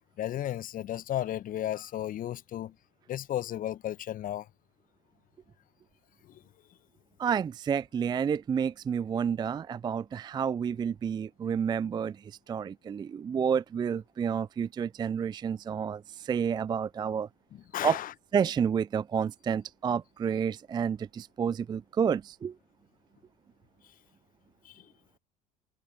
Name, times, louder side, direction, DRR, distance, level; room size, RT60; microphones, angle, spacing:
voice 1, 0.2-2.7 3.1-4.4 17.7-18.1 24.6-24.7, left 12 dB, 40° left, 1.1 m, -33 dB
voice 2, 7.2-17.3 17.8-18.0 18.3-22.5, right 7 dB, 20° right, 0.4 m, -30 dB
figure-of-eight pair, 70°, 21 cm